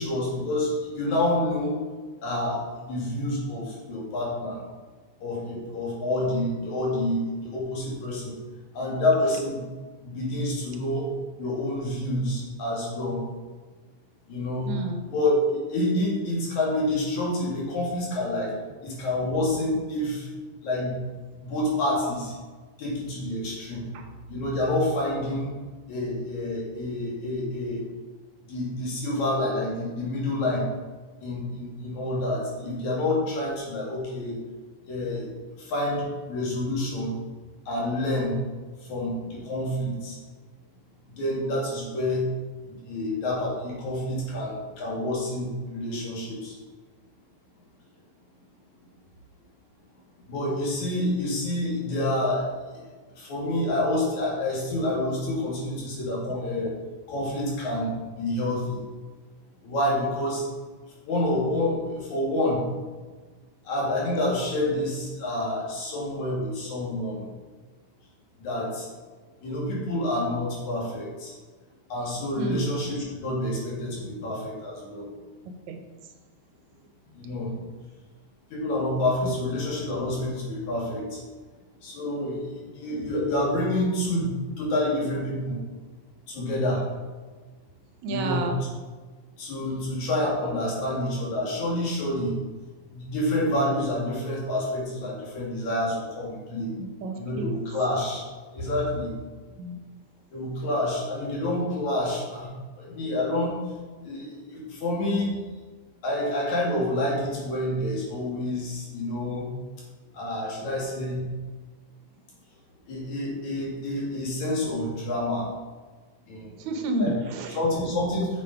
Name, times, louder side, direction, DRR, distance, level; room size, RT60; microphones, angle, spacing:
voice 1, 0.0-1.8 2.2-4.6 5.2-8.3 8.8-9.6 10.0-11.1 11.4-13.2 14.3-14.7 15.1-18.5 18.8-20.3 20.6-21.0 21.4-22.3 22.8-23.9 24.3-25.5 25.9-27.8 28.5-30.6 31.2-34.4 34.9-35.3 35.6-37.2 37.7-38.4 38.9-40.2 41.2-42.3 42.9-46.5 50.3-52.5 53.2-56.8 57.1-58.8 59.6-60.4 61.1-62.6 63.7-67.2 68.4-68.9 69.4-71.3 71.9-75.1 77.1-77.5 78.5-81.2 81.8-85.6 86.3-86.8 88.1-88.5 89.4-92.3 92.9-96.7 97.2-98.2 98.5-99.1 100.3-102.5 102.8-103.5 104.0-105.3 106.0-109.5 110.1-111.3 112.9-115.5 116.3-116.5 116.7-117.2 117.6-118.3, left 1 dB, 75° left, -4 dB, 3.6 m, -28 dB
voice 2, 14.7-15.0 23.9-24.0 72.4-72.6 75.7-75.8 79.2-79.3 88.0-88.6 96.8-97.5 99.5-99.8 116.6-117.6, right 2 dB, 80° right, 5 dB, 2.3 m, -30 dB
8.2 x 7.0 x 4.8 m, 1.4 s
omnidirectional pair, 3.3 m